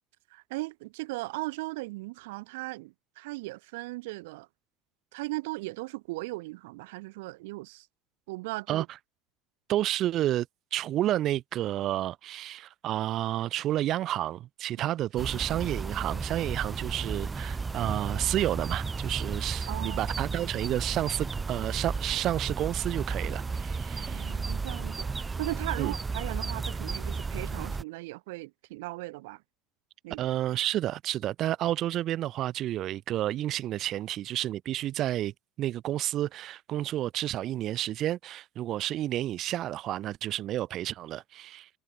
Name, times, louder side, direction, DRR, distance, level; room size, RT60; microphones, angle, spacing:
voice 1, 0.3-4.5 5.1-7.9 8.3-8.9 19.7-20.3 23.9-29.4 30.0-30.3, right 22 dB, 75° right, 1.9 m, -38 dB
voice 2, 9.7-10.5 10.7-24.4 25.8-25.9 30.2-41.7, right 13 dB, 50° right, 3.0 m, -30 dB
sound 1, 15.2-27.8, right 4 dB, 20° right, 0.5 m, -33 dB
hypercardioid pair, 85°, 0 cm